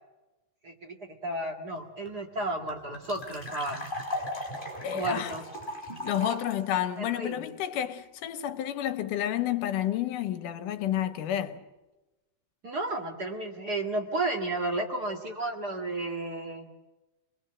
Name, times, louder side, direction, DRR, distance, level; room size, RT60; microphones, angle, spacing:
voice 1, 0.6-1.0 1.2-3.9 4.9-5.4 7.2-7.4 12.6-16.7, right 2 dB, 35° right, 1.9 m, -32 dB
sound 1, 1.8-1.9 2.0-2.1 2.4-6.5, left 1 dB, 15° left, 5.7 m, -37 dB
voice 2, 4.8-5.3 6.0-11.6, left 11 dB, 80° left, 2.7 m, -30 dB
27.0 x 20.5 x 7.7 m
omnidirectional pair, 3.7 m